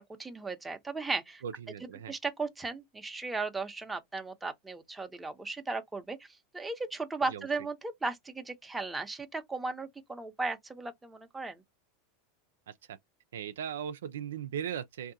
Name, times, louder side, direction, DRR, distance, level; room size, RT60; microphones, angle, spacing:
voice 1, 0.2-1.4 2.1-6.3 6.5-11.6, right 3 dB, 10° right, 0.7 m, -36 dB
voice 2, 1.4-2.1 7.3-7.5 12.7-13.0 13.3-15.1, right 8 dB, 85° right, 0.4 m, -38 dB
3.6 x 2.7 x 2.6 m
hypercardioid pair, 110°, 0 cm